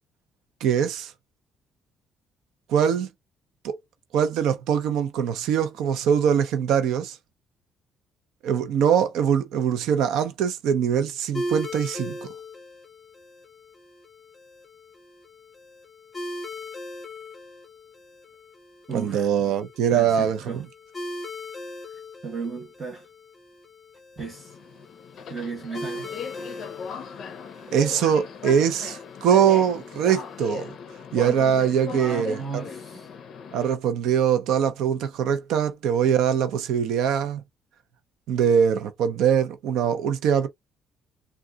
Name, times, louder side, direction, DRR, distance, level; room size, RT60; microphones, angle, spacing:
voice 1, 0.6-1.1 2.7-3.1 3.6-3.7 4.1-7.2 8.4-12.2 18.9-20.4 27.7-30.7 31.1-32.4 33.5-37.4 38.3-40.5, right 8 dB, 80° right, 0.7 m, -22 dB
sound 1, 11.3-30.5, left 1 dB, 15° left, 0.8 m, -40 dB
voice 2, 18.9-19.3 19.9-20.6 21.9-23.1 24.2-24.6 25.3-26.2 31.9-33.1, right 4 dB, 20° right, 1.0 m, -35 dB
Subway metro underground, 24.2-33.7, left 6 dB, 50° left, 0.5 m, -38 dB
3.7 x 2.4 x 2.3 m
cardioid pair, 160°, 0 cm